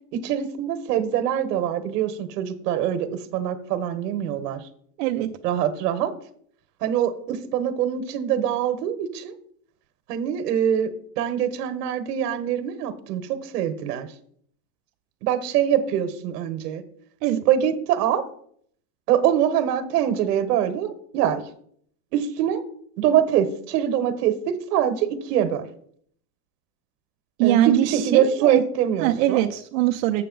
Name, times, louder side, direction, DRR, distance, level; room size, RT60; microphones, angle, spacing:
voice 1, 0.1-4.7 5.4-6.1 6.8-9.3 10.1-14.1 15.2-16.8 17.5-18.2 19.1-21.4 22.1-22.6 23.0-25.7 27.4-29.4, right 9 dB, 80° right, 11 dB, 1.1 m, -24 dB
voice 2, 5.0-5.3 17.2-17.4 27.4-28.6 29.0-30.2, right 13 dB, 60° right, 2 dB, 0.6 m, -22 dB
7.7 x 6.6 x 3.8 m, 0.63 s
supercardioid pair, 140°, 47 cm